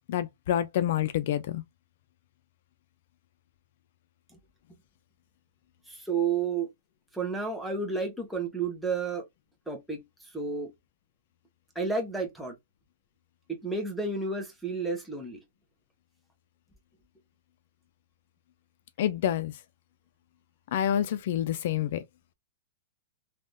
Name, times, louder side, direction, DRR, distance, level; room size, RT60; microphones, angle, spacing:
voice 1, 0.1-1.6 19.0-19.5 20.7-22.0, left 10 dB, 60° left, 0.3 m, -27 dB
voice 2, 5.9-6.7 7.1-9.2 9.7-10.0 10.3-10.7 11.7-12.5 13.5-15.4, right 4 dB, ahead, 0.7 m, -31 dB
3.3 x 2.3 x 2.5 m
hypercardioid pair, 155°, 0 cm